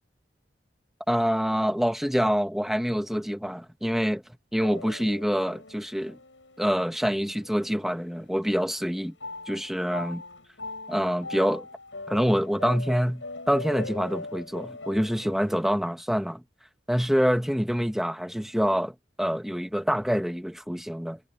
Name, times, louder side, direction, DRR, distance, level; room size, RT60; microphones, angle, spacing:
voice 1, 1.1-4.2 4.5-6.2 6.6-9.1 9.5-10.2 10.9-11.7 12.1-16.4 16.9-21.2, equal, ahead, 1.3 m, -26 dB
sound 1, 4.6-8.1 8.4-15.7, left 2 dB, 85° left, 7.5 m, -41 dB
head